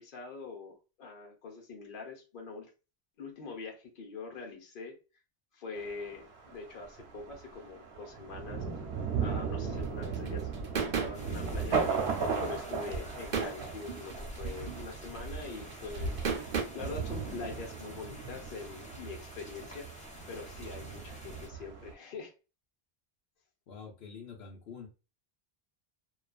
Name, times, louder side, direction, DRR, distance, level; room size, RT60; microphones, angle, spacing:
voice 1, 0.0-2.7 3.2-5.0 5.5-8.6 9.2-16.2 16.5-19.9 20.3-22.3, left 4 dB, 60° left, 0.9 m, -44 dB
Thunder, 5.8-21.9, right 5 dB, 85° right, 0.9 m, -37 dB
sound 1, 9.7-16.6, right 5 dB, 55° right, 0.7 m, -36 dB
sound 2, 11.1-21.5, equal, 10° left, 0.6 m, -50 dB
voice 2, 23.7-24.9, left 5 dB, 90° left, 1.0 m, -46 dB
2.4 x 2.3 x 2.3 m
omnidirectional pair, 1.0 m